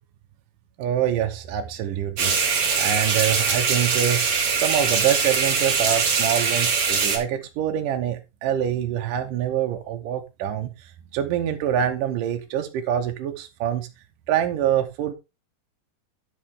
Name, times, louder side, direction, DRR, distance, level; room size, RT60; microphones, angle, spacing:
voice 1, 0.8-2.3 2.8-4.2 4.5-13.9 14.3-15.1, right 10 dB, 75° right, 4 dB, 2.5 m, -25 dB
sound 1, 2.2-7.2, right 5 dB, 45° right, 2.5 m, -22 dB
11.5 x 6.3 x 3.7 m, 0.26 s
omnidirectional pair, 4.0 m